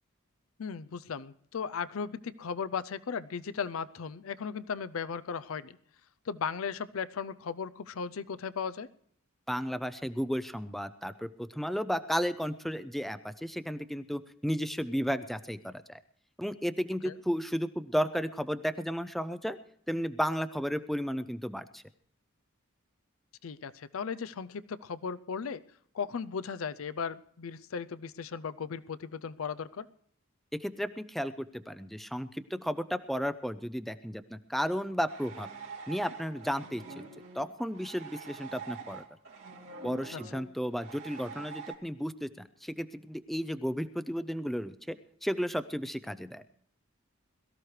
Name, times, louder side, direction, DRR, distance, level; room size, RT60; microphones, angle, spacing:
voice 1, 0.6-5.8 6.3-8.9 17.0-17.1 23.4-25.6 25.9-29.9 40.1-40.2, left 6 dB, 70° left, 16 dB, 0.5 m, -36 dB
voice 2, 9.5-16.0 16.4-19.6 19.9-21.8 30.5-35.5 35.9-37.0 37.3-39.0 39.8-46.4, equal, ahead, 12 dB, 0.5 m, -33 dB
sound 1, 35.1-41.7, right 5 dB, 80° right, 2.9 m, -45 dB
22.0 x 14.0 x 3.2 m, 0.64 s
head